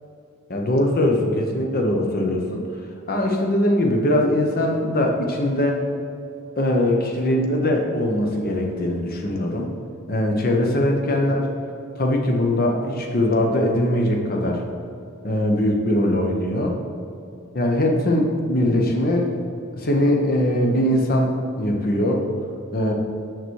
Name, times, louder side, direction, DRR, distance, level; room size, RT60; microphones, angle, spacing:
voice 1, 0.5-2.7 3.1-5.8 6.6-9.7 10.1-11.5 12.0-14.6 15.2-16.8 17.5-19.3 19.7-22.2 22.7-22.9, left 1 dB, 45° left, 1 dB, 1.0 m, -21 dB
6.9 x 5.9 x 4.7 m, 2.6 s
head